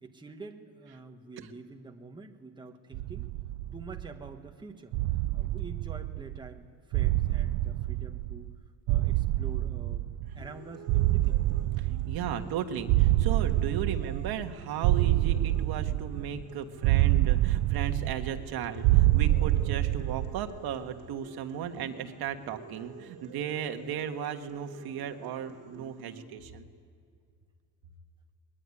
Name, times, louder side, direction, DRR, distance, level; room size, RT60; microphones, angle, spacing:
voice 1, 0.0-3.3 3.7-5.0 5.3-8.5 8.9-11.4, right 3 dB, 10° right, 4 dB, 1.4 m, -47 dB
sound 1, 2.9-4.3 4.9-6.5 6.9-8.6 8.9-10.5 10.9-12.5 12.9-14.5 14.8-16.4 16.8-18.5 18.8-20.5, right 16 dB, 85° right, 0.6 m, -26 dB
sound 2, 10.2-26.2, right 5 dB, 45° right, 4.4 m, -49 dB
voice 2, 11.8-26.6, right 8 dB, 65° right, 6 dB, 1.7 m, -36 dB
22.5 x 21.5 x 9.8 m, 2.2 s
cardioid pair, 160°, 41 cm